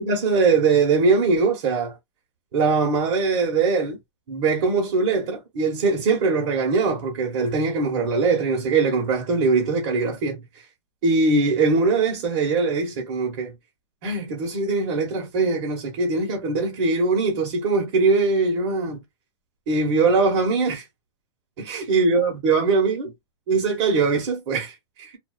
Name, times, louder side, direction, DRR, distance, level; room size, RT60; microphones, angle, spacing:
voice 1, 0.0-2.0 2.5-4.0 4.3-10.4 11.0-13.5 14.0-19.0 19.7-20.8 21.7-23.1 23.5-25.2, right 4 dB, 50° right, 1.0 m, -21 dB
2.4 x 2.2 x 2.3 m
hypercardioid pair, 130°, 15 cm